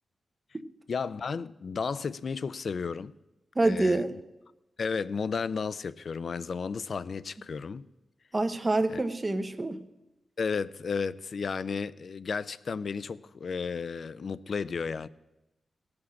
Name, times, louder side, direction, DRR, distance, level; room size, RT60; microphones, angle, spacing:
voice 1, 0.9-3.1 3.6-4.0 4.8-7.9 8.9-9.0 10.4-15.1, left 5 dB, 60° left, 0.4 m, -33 dB
voice 2, 3.6-4.1 8.3-9.8, right 2 dB, 25° right, 0.8 m, -26 dB
17.5 x 6.0 x 6.3 m
wide cardioid pair, 115°, 0 cm